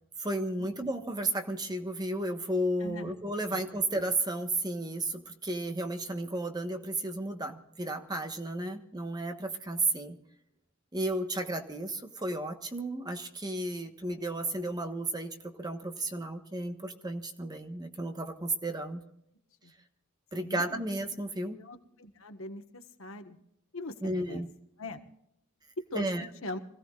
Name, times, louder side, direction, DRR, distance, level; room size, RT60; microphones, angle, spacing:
voice 1, 0.2-10.2 10.9-19.0 20.3-21.6 24.0-24.5 25.9-26.3, right 1 dB, 20° right, 5 dB, 1.3 m, -33 dB
voice 2, 2.8-3.1 3.5-3.6 19.6-19.7 20.4-20.8 21.6-23.4 23.7-24.4 24.8-25.0 25.9-26.1 26.4-26.6, left 1 dB, 65° left, 6 dB, 1.5 m, -41 dB
25.5 x 16.0 x 2.5 m, 0.78 s
head